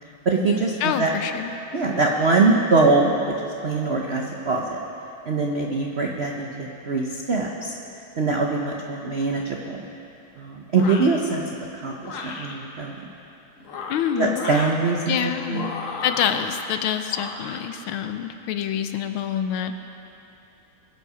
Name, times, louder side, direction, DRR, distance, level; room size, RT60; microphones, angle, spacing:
voice 1, 0.2-1.1 1.7-3.2 3.6-4.6 5.3-7.7 8.2-9.8 10.4-11.4 11.7-13.0 14.2-15.7, right 3 dB, 70° right, 0 dB, 0.6 m, -23 dB
voice 2, 0.8-1.6 13.9-14.5 15.1-15.7 16.0-19.8, left 9 dB, 75° left, 8 dB, 1.5 m, -26 dB
sound 1, 10.7-11.2 12.0-12.5 13.6-14.8 15.5-16.6 17.1-17.6, left 4 dB, 50° left, 1.1 m, -34 dB
22.0 x 8.3 x 4.9 m, 2.9 s
omnidirectional pair, 2.4 m